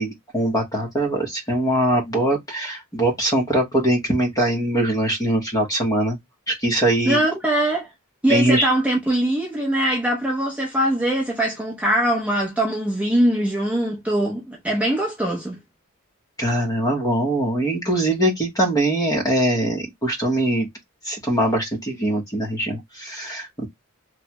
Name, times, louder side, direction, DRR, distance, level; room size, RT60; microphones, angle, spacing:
voice 1, 0.0-6.2 6.5-7.2 8.3-8.7 16.4-20.7 21.0-23.7, right 1 dB, 15° left, 1.0 m, -22 dB
voice 2, 7.0-7.9 8.2-15.6, right 1 dB, 5° right, 0.7 m, -22 dB
3.1 x 2.2 x 2.8 m
head